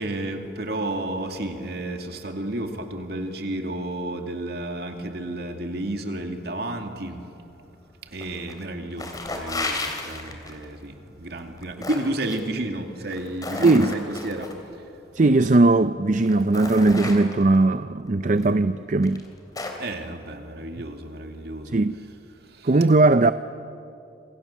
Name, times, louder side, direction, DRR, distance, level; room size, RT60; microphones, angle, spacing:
voice 1, 0.0-7.2 8.1-14.5 19.8-21.8 22.5-22.7, right 1 dB, 60° right, 2.5 m, -31 dB
sound 1, 8.2-8.6 8.9-10.6 11.4-12.4 13.0-14.5 15.6-15.7 16.2-17.6 18.4-18.5 19.0-19.9, left 2 dB, 20° left, 3.0 m, -33 dB
voice 2, 13.6-14.0 15.1-19.2 21.7-22.0 22.6-23.3, right 2 dB, 40° right, 0.5 m, -18 dB
27.0 x 27.0 x 7.3 m
head